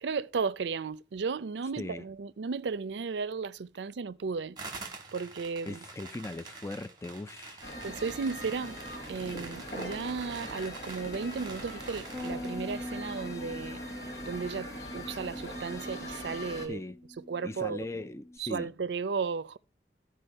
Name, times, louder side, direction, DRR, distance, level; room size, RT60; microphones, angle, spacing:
voice 1, 0.0-4.6 5.1-5.8 7.8-8.8 9.1-13.8 14.2-16.8 17.2-17.9 18.4-19.6, right 5 dB, 85° right, 0.5 m, -34 dB
sound 1, 4.6-12.6, right 3 dB, 25° right, 1.3 m, -46 dB
voice 2, 5.6-7.7 16.7-17.0 17.4-18.7, left 2 dB, 15° left, 0.4 m, -39 dB
sound 2, 7.6-16.7, equal, 70° left, 3.3 m, -41 dB
Bass guitar, 12.1-18.4, left 1 dB, 10° right, 0.9 m, -44 dB
12.5 x 4.7 x 5.4 m
head